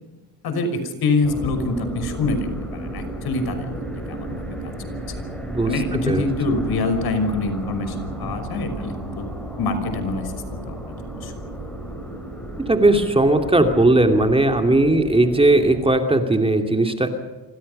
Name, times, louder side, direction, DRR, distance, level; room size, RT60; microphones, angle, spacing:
voice 1, 0.4-3.7 4.1-4.7 5.7-9.3 9.6-11.3, left 3 dB, 60° left, 8 dB, 5.8 m, -25 dB
sound 1, 1.2-15.9, right 1 dB, ahead, 7.6 m, -33 dB
voice 2, 12.7-17.1, right 2 dB, 15° right, 5 dB, 2.6 m, -17 dB
27.0 x 27.0 x 5.5 m, 1.2 s
cardioid pair, 125°, 42 cm